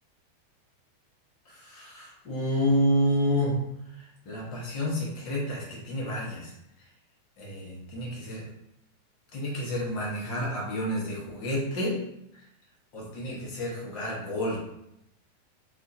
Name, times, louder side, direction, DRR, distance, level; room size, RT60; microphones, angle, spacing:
voice 1, 1.5-3.6 4.0-6.5 7.4-8.4 9.3-12.0 12.3-12.4 12.9-14.6, equal, 40° left, -4 dB, 1.1 m, -29 dB
2.7 x 2.5 x 2.6 m, 0.81 s
figure-of-eight pair, 90°, 0 cm